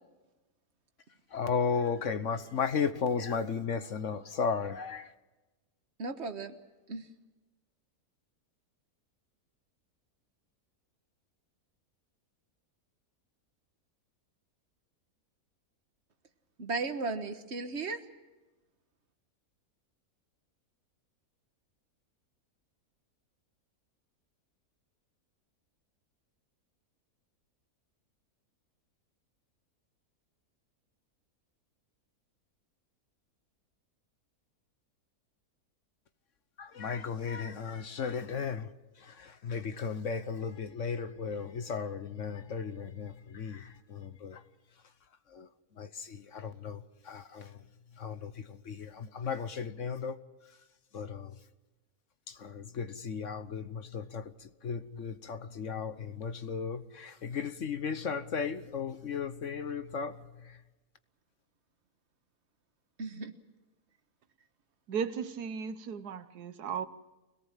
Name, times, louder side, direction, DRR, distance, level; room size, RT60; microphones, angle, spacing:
voice 1, 1.3-5.1 36.6-44.4 45.3-45.5 45.8-47.6 48.0-50.2 50.9-51.4 52.3-60.6, left 6 dB, 55° left, 1.3 m, -35 dB
voice 2, 6.0-6.5 6.9-7.1 16.6-18.0 63.0-63.3, right 3 dB, 45° right, 1.6 m, -35 dB
voice 3, 64.9-66.9, right 6 dB, 90° right, 1.5 m, -36 dB
25.0 x 18.0 x 7.5 m
omnidirectional pair, 1.6 m